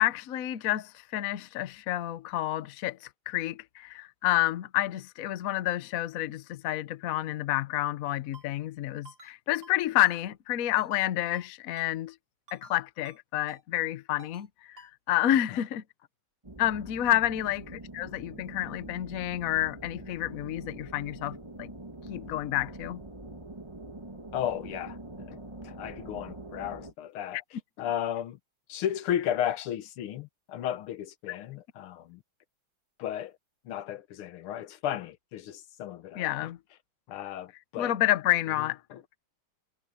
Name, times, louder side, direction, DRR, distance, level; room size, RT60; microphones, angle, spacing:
voice 1, 0.0-3.0 3.3-12.1 12.5-15.8 16.6-21.7 22.1-23.0 36.1-36.6 37.8-38.8, left 13 dB, 65° left, 0.9 m, -29 dB
Ringtone, 8.3-8.5 9.0-9.3 9.6-9.8 10.0-10.2 10.8-11.0 11.3-11.5 11.8-11.9 12.5-12.7 13.0-13.2 13.5-13.6 14.2-14.5 14.8-14.9, right 3 dB, 60° right, 6.0 m, -51 dB
sound 1, 16.4-26.9, right 2 dB, 15° right, 2.1 m, -44 dB
voice 2, 24.3-27.4 27.8-28.4 28.7-32.2 33.0-33.4 33.7-36.5 37.1-38.0 38.6-39.0, left 10 dB, 85° left, 1.8 m, -34 dB
omnidirectional pair, 2.3 m